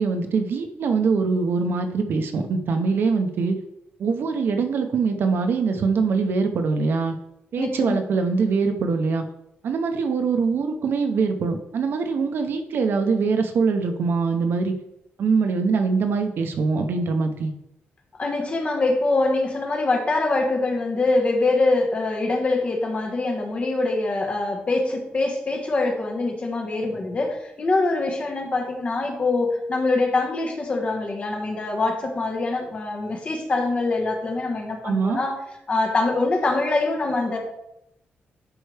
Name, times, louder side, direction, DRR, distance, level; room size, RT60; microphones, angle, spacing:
voice 1, 0.0-3.6 4.0-7.2 7.5-9.2 9.6-14.7 15.2-17.5 34.8-35.2, right 4 dB, 65° right, 7 dB, 0.8 m, -23 dB
voice 2, 7.6-8.0 18.2-35.4 35.7-37.4, left 2 dB, 30° left, 2 dB, 1.4 m, -24 dB
11.0 x 4.6 x 3.4 m, 0.82 s
wide cardioid pair, 175°, 4 cm